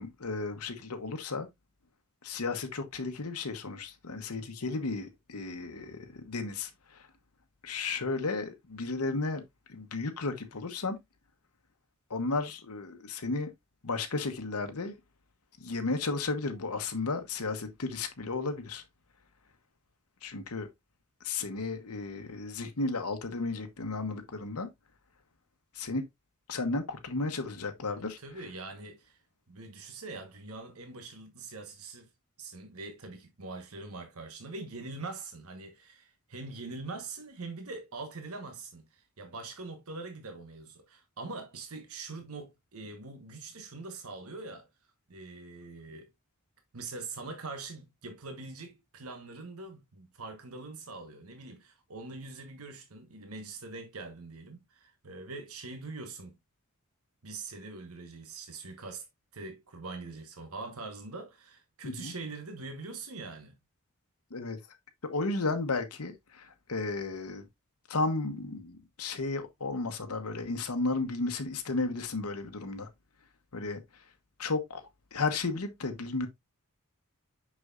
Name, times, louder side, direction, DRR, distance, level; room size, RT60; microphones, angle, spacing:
voice 1, 0.0-1.5 2.2-7.1 7.6-9.4 9.7-11.0 12.1-13.5 13.8-15.0 15.6-18.8 20.2-20.7 21.2-24.7 25.7-26.0 26.5-28.2 61.8-62.1 64.3-64.6 65.0-67.5 67.9-72.9 73.5-74.0 74.4-76.3, left 3 dB, 80° left, 1.0 m, -34 dB
voice 2, 28.2-29.2 29.5-32.1 32.4-44.7 45.1-46.1 46.7-56.4 57.2-59.1 59.3-63.6, right 3 dB, 75° right, 1.3 m, -43 dB
6.5 x 6.0 x 2.4 m
head